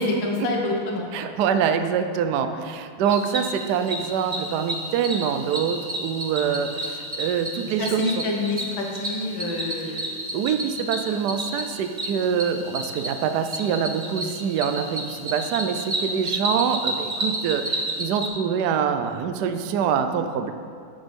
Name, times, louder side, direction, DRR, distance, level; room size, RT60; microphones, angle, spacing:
voice 1, 0.0-1.3 2.5-2.6 7.8-10.0, left 2 dB, 70° left, 0 dB, 2.0 m, -27 dB
voice 2, 1.1-8.2 10.3-20.5, right 7 dB, 70° right, 8 dB, 1.0 m, -25 dB
Cricket, 3.1-18.3, right 1 dB, 30° right, 1.0 m, -31 dB
9.0 x 7.5 x 5.3 m, 2.3 s
omnidirectional pair, 2.3 m